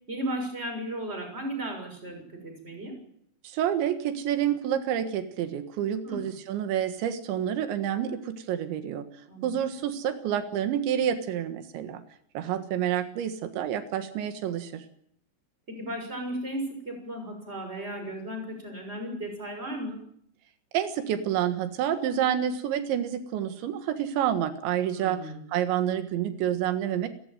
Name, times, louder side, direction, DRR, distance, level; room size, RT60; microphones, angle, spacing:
voice 1, 0.1-3.0 6.0-6.2 9.3-9.5 15.7-20.0 24.9-25.4, right 1 dB, 15° right, 4 dB, 6.6 m, -35 dB
voice 2, 3.4-9.1 9.4-12.0 12.4-14.9 20.7-25.2 25.5-27.1, right 10 dB, 90° right, 9 dB, 3.9 m, -28 dB
29.0 x 15.5 x 9.2 m, 0.68 s
omnidirectional pair, 5.1 m